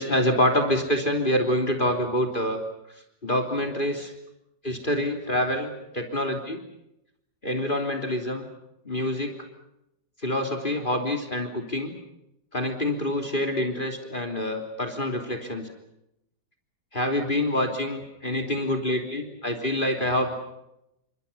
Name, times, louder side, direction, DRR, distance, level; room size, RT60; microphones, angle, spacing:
voice 1, 0.0-2.6 3.2-4.1 4.6-6.6 7.4-8.5 8.9-9.4 10.2-11.9 12.5-15.7 16.9-20.3, left 1 dB, 25° left, 5 dB, 3.4 m, -26 dB
30.0 x 26.0 x 5.6 m, 0.84 s
omnidirectional pair, 1.9 m